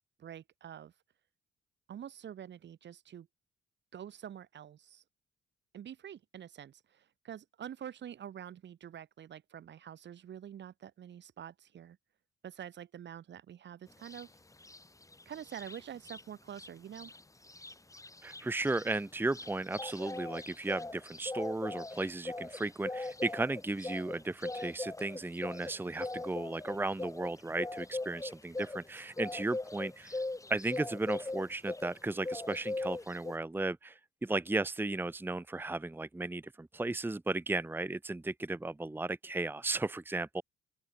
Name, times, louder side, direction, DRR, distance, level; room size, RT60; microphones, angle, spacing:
voice 1, 0.2-0.9 1.9-3.3 3.9-5.0 5.7-12.0 12.4-14.3 15.3-17.1, right 9 dB, 65° right, 5.7 m, -46 dB
sound 1, 14.0-14.2 14.6-16.2 16.5-16.7 16.9-33.3, left 2 dB, 15° left, 8.0 m, -40 dB
voice 2, 18.2-30.2 30.5-40.4, right 2 dB, 10° right, 1.0 m, -35 dB
open air
cardioid pair, 90°, 20 cm